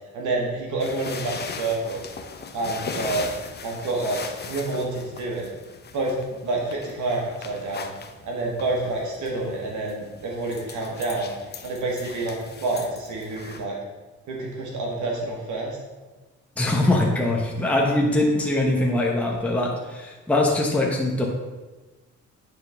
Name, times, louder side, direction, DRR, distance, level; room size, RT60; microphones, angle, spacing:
voice 1, 0.1-2.0 2.5-3.3 3.6-5.4 5.9-7.9 8.2-11.3 11.6-13.8 14.3-15.8, right 2 dB, 75° right, -1 dB, 1.3 m, -28 dB
sound 1, 0.8-13.6, left 5 dB, 35° left, 0.6 m, -39 dB
voice 2, 16.6-21.2, left 2 dB, 5° left, -2 dB, 1.0 m, -22 dB
9.4 x 3.9 x 3.5 m, 1.2 s
cardioid pair, 90°, 30 cm